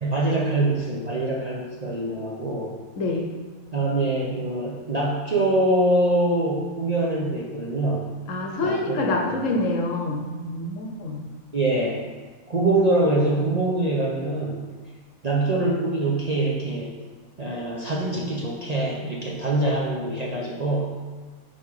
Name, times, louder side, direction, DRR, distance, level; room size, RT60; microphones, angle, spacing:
voice 1, 0.0-2.7 3.7-8.1 8.6-9.5 11.5-12.0 12.5-14.6 15.2-16.9 17.4-20.9, right 2 dB, 35° right, -4 dB, 0.7 m, -24 dB
voice 2, 3.0-3.3 8.3-11.3, left 2 dB, 65° left, 1 dB, 1.1 m, -26 dB
5.5 x 4.4 x 4.8 m, 1.3 s
omnidirectional pair, 1.5 m